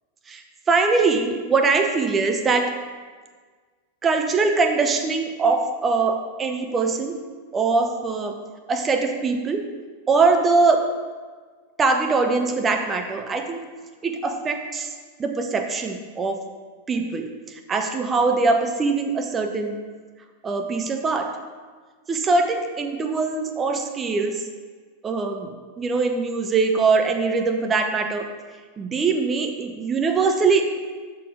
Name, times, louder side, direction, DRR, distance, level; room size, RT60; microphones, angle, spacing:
voice 1, 0.7-2.7 4.0-7.2 7.5-8.3 8.7-9.6 10.1-10.8 11.8-13.6 14.0-14.9 15.2-16.4 16.9-17.3 17.7-19.7 20.4-21.3 22.1-24.4 25.0-25.5 25.8-28.3 28.8-30.6, right 4 dB, 20° right, 4 dB, 0.6 m, -22 dB
5.7 x 4.2 x 4.8 m, 1.5 s
figure-of-eight pair, 90°, 0 cm